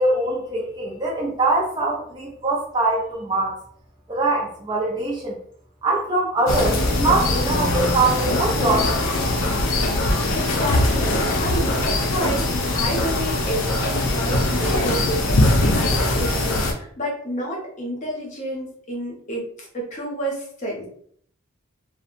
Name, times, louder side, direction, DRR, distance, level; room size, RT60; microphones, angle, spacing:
voice 1, 0.0-3.6 4.1-5.4 5.8-9.2, right 2 dB, 20° right, -3 dB, 0.4 m, -23 dB
sound 1, 6.5-16.7, left 2 dB, 75° left, 0.5 m, -21 dB
voice 2, 10.0-20.9, right 1 dB, 35° left, -2 dB, 0.7 m, -30 dB
2.7 x 2.1 x 2.4 m, 0.62 s
head